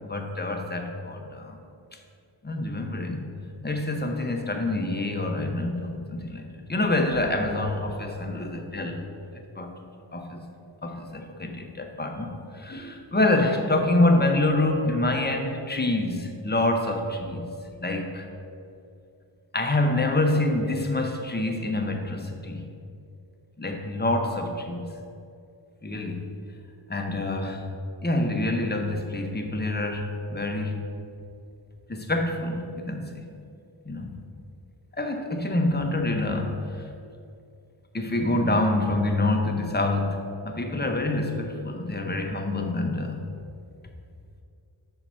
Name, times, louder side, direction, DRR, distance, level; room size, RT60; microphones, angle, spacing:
voice 1, 0.0-1.6 2.4-3.2 3.6-9.1 9.6-9.7 10.1-10.4 10.8-17.5 17.8-18.3 19.5-22.7 23.6-24.9 25.8-26.2 26.9-27.7 28.0-30.8 31.9-33.2 33.8-34.1 34.9-36.6 37.9-43.2, left 2 dB, 20° left, 3 dB, 0.7 m, -26 dB
5.8 x 4.4 x 6.1 m, 2.5 s
wide cardioid pair, 80°, 48 cm